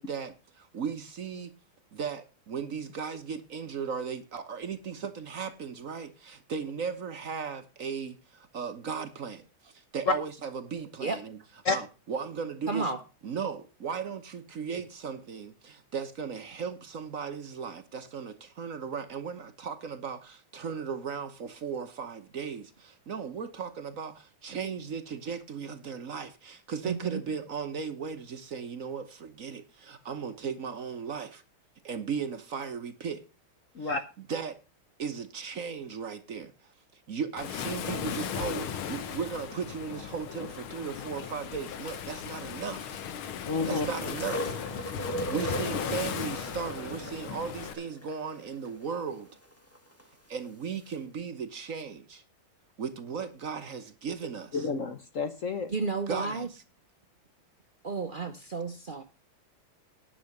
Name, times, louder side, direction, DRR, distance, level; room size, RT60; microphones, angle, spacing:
voice 1, 0.0-1.5 1.9-11.4 11.7-12.9 13.2-31.4 31.8-33.2 33.8-34.6 35.0-43.0 43.6-44.9 45.3-49.3 50.3-52.2 52.8-54.7 56.1-56.6, right 6 dB, 50° right, 1.1 m, -36 dB
voice 2, 12.7-13.0 26.8-27.2 55.7-56.5 57.8-59.0, right 4 dB, 80° right, 0.4 m, -32 dB
Waves surf, 37.4-47.7, left 8 dB, 90° left, 1.9 m, -36 dB
voice 3, 43.5-43.9 54.5-55.7, left 4 dB, 55° left, 1.0 m, -29 dB
sound 1, 44.0-50.1 50.9-51.0, right 1 dB, 10° left, 1.0 m, -39 dB
10.0 x 6.8 x 6.5 m
omnidirectional pair, 2.2 m